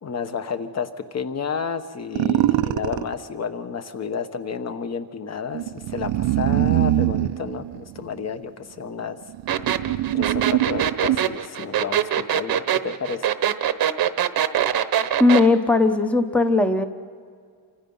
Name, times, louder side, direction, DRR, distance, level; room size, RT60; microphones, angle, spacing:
voice 1, 0.0-9.2 9.8-9.9 10.1-13.3, left 6 dB, 35° left, 9 dB, 1.3 m, -31 dB
sound 1, 2.1-3.1 5.5-8.3 9.0-11.4, right 14 dB, 70° right, 0.8 m, -23 dB
sound 2, 9.5-15.5, right 10 dB, 55° right, 1.1 m, -22 dB
voice 2, 15.2-16.9, left 3 dB, 5° left, 8 dB, 0.9 m, -18 dB
29.5 x 25.5 x 5.6 m, 2.1 s
cardioid pair, 135°, 44 cm